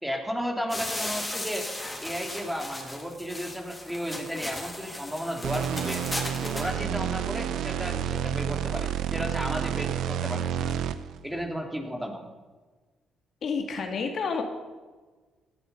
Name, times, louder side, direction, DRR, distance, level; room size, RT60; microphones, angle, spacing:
voice 1, 0.0-1.7 2.0-6.0 6.4-10.7 11.2-12.2, equal, 5° right, 2 dB, 3.1 m, -34 dB
sound 1, 0.7-6.7, left 1 dB, 15° left, 3.9 m, -36 dB
sound 2, 5.4-11.2, right 9 dB, 80° right, 0.8 m, -30 dB
voice 2, 13.4-14.4, left 5 dB, 60° left, 3 dB, 2.5 m, -29 dB
17.5 x 14.0 x 5.6 m, 1.3 s
cardioid pair, 90°, 0 cm